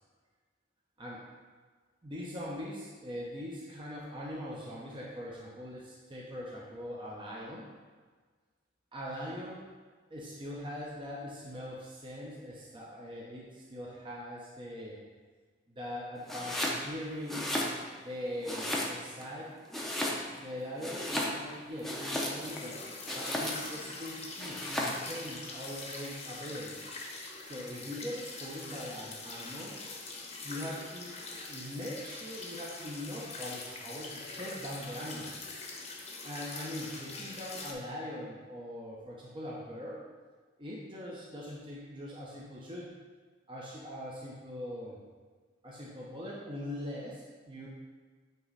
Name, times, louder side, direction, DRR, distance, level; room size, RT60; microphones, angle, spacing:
voice 1, 2.0-7.7 8.9-9.7 10.1-15.0 15.7-17.5 18.0-19.5 20.3-22.8 23.1-26.9 27.4-29.7 30.4-31.2 31.5-35.3 36.2-40.0 40.6-42.9 43.5-45.0 45.6-47.7, equal, 25° right, -5 dB, 0.9 m, -41 dB
Domestic sounds home sounds, 16.2-16.8 17.2-18.1 18.4-19.2 19.7-20.5 20.8-22.6 23.1-23.8 24.4-25.1, left 1 dB, ahead, 0.8 m, -34 dB
sound 1, 21.8-37.7, left 3 dB, 35° left, 0.9 m, -44 dB
9.1 x 3.1 x 4.0 m, 1.5 s
head